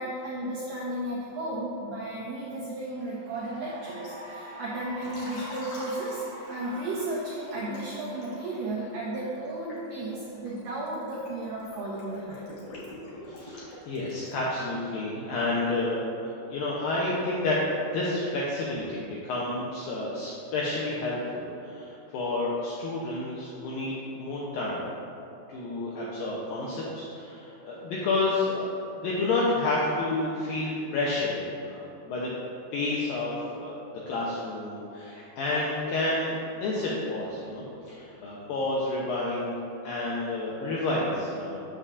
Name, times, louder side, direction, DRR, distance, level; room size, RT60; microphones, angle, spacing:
voice 1, 0.0-6.2 6.5-12.4, right 1 dB, 85° right, -6 dB, 1.9 m, -34 dB
Cheering / Applause, 2.8-9.5, right 1 dB, 70° right, 2.0 m, -45 dB
Liquid, 5.0-7.0 7.5-14.5, left 1 dB, 65° left, 1.8 m, -46 dB
voice 2, 13.4-17.6 17.9-24.9 25.5-31.4 31.7-32.3 32.7-33.7 34.1-41.6, left 2 dB, 85° left, -5 dB, 2.0 m, -30 dB
7.7 x 6.7 x 2.4 m, 2.8 s
omnidirectional pair, 4.9 m